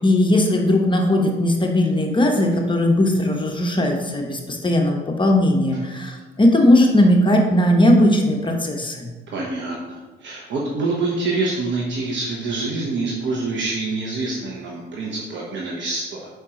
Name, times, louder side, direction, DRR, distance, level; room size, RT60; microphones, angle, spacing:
voice 1, 0.0-9.1, left 1 dB, 25° left, 2 dB, 0.9 m, -18 dB
voice 2, 9.3-16.3, right 3 dB, 70° right, -3 dB, 1.0 m, -26 dB
5.0 x 4.4 x 4.9 m, 1.3 s
cardioid pair, 90°, 20 cm